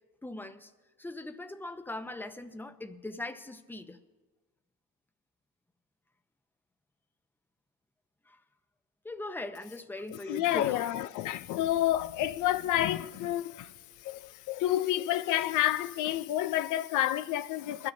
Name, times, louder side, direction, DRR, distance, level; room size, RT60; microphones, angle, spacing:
voice 1, 0.2-0.7 1.0-4.0 8.3-8.4 9.0-10.9, left 2 dB, 5° left, 0.7 m, -40 dB
voice 2, 10.1-13.7 14.0-17.9, left 13 dB, 90° left, 0.5 m, -29 dB
21.5 x 13.0 x 2.7 m
cardioid pair, 90°, 30 cm